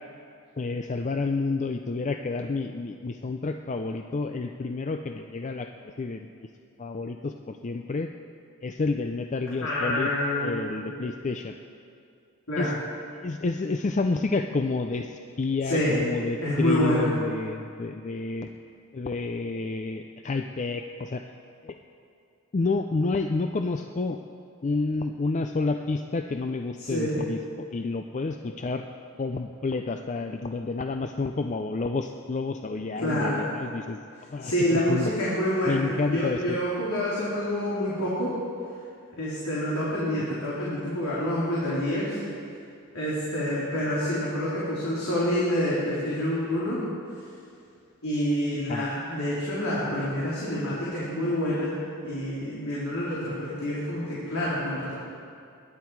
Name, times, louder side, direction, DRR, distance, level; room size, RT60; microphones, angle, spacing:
voice 1, 0.6-6.3 6.8-8.1 8.6-10.1 10.4-11.6 12.6-12.7 13.2-18.5 18.9-21.2 21.6-21.8 22.5-24.2 24.6-28.8 29.2-34.0 34.3-35.1 35.7-36.6 48.7-48.8, left 3 dB, 35° left, 6 dB, 0.4 m, -29 dB
voice 2, 9.6-10.5 10.8-10.9 12.5-12.8 15.6-16.0 16.4-17.1 26.8-27.2 33.0-33.5 34.4-38.3 39.2-42.2 42.9-46.8 48.0-51.7 52.0-54.9, equal, 85° left, -8 dB, 3.4 m, -27 dB
21.5 x 11.0 x 4.7 m, 2.4 s
head